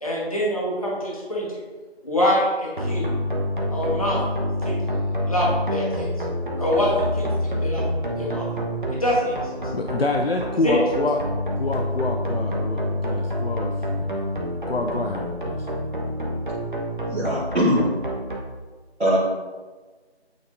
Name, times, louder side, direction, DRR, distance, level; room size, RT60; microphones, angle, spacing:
voice 1, 0.0-1.5 2.0-3.1 3.7-4.2 4.6-4.8 5.2-6.1 6.6-7.8 8.2-8.4 8.9-9.4 10.6-11.0, equal, 35° left, -6 dB, 1.5 m, -24 dB
sound 1, 2.8-18.4, equal, 50° right, 1.0 m, -27 dB
voice 2, 9.7-11.2 11.6-14.1 14.7-15.7, left 2 dB, 65° left, 2 dB, 0.6 m, -27 dB
voice 3, 17.1-17.9 19.0-19.2, equal, 90° right, -8 dB, 1.7 m, -21 dB
8.5 x 4.2 x 2.6 m, 1.3 s
figure-of-eight pair, 175°, 33 cm